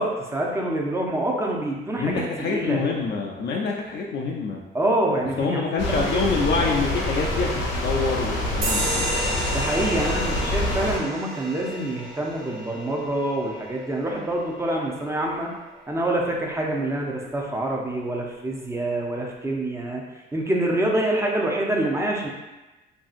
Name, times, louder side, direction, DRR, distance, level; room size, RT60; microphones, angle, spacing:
voice 1, 0.0-2.8 4.7-6.7 9.5-15.5 15.9-20.0 20.3-22.3, right 1 dB, 15° right, -1 dB, 0.5 m, -26 dB
voice 2, 2.0-4.6 5.4-7.5 7.8-9.2, left 4 dB, 55° left, -1 dB, 0.4 m, -26 dB
sound 1, 5.8-11.0, left 1 dB, 75° left, 0.8 m, -26 dB
sound 2, 8.6-15.7, right 1 dB, 85° right, 0.6 m, -32 dB
2.8 x 2.6 x 2.4 m, 1.1 s
cardioid pair, 90°, 20 cm